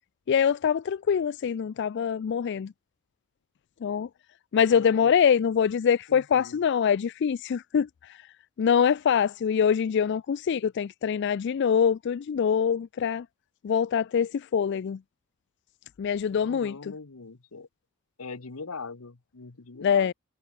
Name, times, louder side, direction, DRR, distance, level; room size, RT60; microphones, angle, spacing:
voice 1, 0.3-2.7 3.8-4.1 4.5-8.2 8.6-13.3 13.6-15.0 16.0-16.9 19.8-20.1, left 7 dB, 55° left, 0.3 m, -24 dB
voice 2, 4.7-5.2 6.1-6.6 16.3-17.7 18.2-20.1, left 4 dB, 85° left, 1.1 m, -42 dB
head